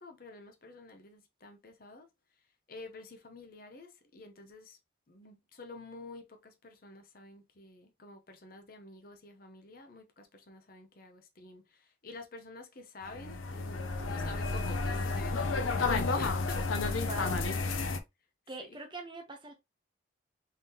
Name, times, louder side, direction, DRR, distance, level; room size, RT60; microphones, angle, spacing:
voice 1, 0.0-2.1 2.7-4.8 5.1-17.1 18.6-18.8, left 2 dB, 45° left, 0.8 m, -49 dB
sound 1, 13.0-18.0, left 3 dB, 85° left, 0.6 m, -31 dB
voice 2, 17.1-17.4 18.5-19.5, right 2 dB, 25° right, 0.9 m, -42 dB
3.7 x 3.6 x 2.8 m
head